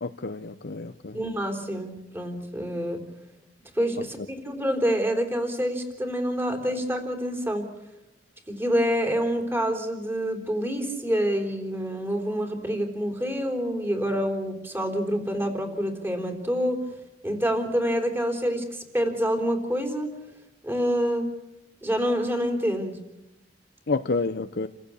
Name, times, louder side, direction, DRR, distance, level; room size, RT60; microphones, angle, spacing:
voice 1, 0.0-1.2 23.9-24.7, left 3 dB, 60° left, 9 dB, 0.8 m, -29 dB
voice 2, 1.1-3.0 3.8-7.7 8.5-16.8 17.2-20.1 20.6-21.3 21.8-23.0, equal, 15° right, 4 dB, 3.7 m, -27 dB
29.0 x 15.5 x 8.6 m, 0.96 s
head